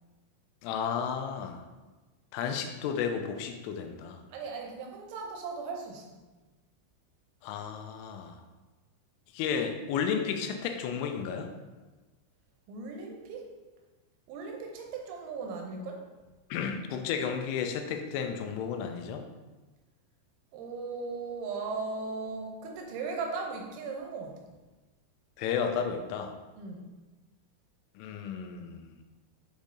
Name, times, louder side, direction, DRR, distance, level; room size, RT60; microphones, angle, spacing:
voice 1, 0.6-1.6 2.3-4.2 7.4-8.4 9.3-11.5 16.5-19.2 25.4-26.3 28.0-29.0, left 7 dB, 90° left, 5 dB, 3.1 m, -33 dB
voice 2, 4.3-6.2 12.7-13.5 14.3-16.0 20.5-24.5 26.5-26.9, right 4 dB, 85° right, 1 dB, 3.1 m, -37 dB
7.5 x 5.1 x 2.7 m, 1.2 s
omnidirectional pair, 5.4 m